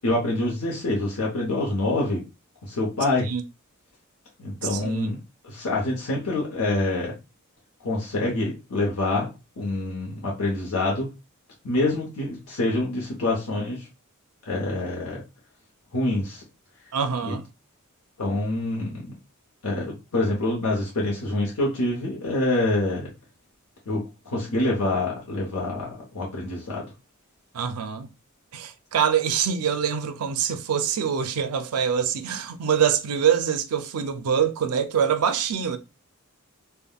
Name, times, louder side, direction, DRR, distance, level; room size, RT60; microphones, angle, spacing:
voice 1, 0.0-2.2 2.6-3.3 4.4-5.2 5.4-7.1 7.8-11.1 11.6-13.9 14.5-15.2 15.9-16.4 18.2-19.1 19.6-23.1 23.9-26.8, left 2 dB, 80° left, 0.8 m, -26 dB
voice 2, 4.7-5.1 16.9-17.5 27.5-28.1 28.5-35.8, right 7 dB, 85° right, 0.4 m, -24 dB
3.5 x 2.1 x 2.2 m
head